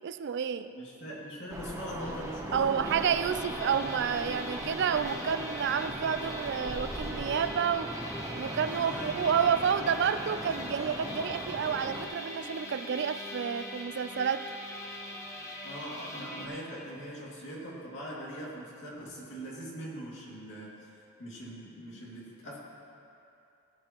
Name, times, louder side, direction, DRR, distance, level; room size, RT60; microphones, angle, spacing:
voice 1, 0.0-0.7 2.5-7.9 8.4-14.5, right 7 dB, 50° right, 11 dB, 0.3 m, -30 dB
voice 2, 0.7-3.0 8.8-9.4 15.6-20.8 21.2-22.6, equal, 55° left, -5 dB, 2.3 m, -41 dB
sound 1, 1.5-12.1, right 1 dB, 15° right, 0.8 m, -39 dB
sound 2, 2.8-16.5, left 1 dB, 15° left, 1.0 m, -42 dB
17.0 x 8.5 x 2.9 m, 2.7 s
head